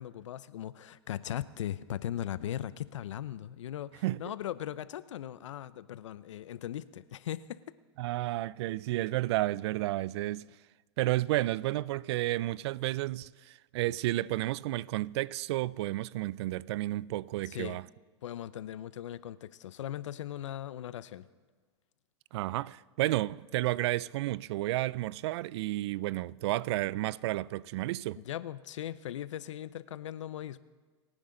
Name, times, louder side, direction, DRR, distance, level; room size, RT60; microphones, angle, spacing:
voice 1, 0.0-7.7 17.5-17.8 18.2-21.3 28.2-30.6, left 11 dB, 80° left, 0.6 m, -39 dB
voice 2, 8.0-10.5 11.0-17.8 22.3-28.2, right 16 dB, 60° right, 0.4 m, -31 dB
29.0 x 9.8 x 3.8 m
hypercardioid pair, 115°, 15 cm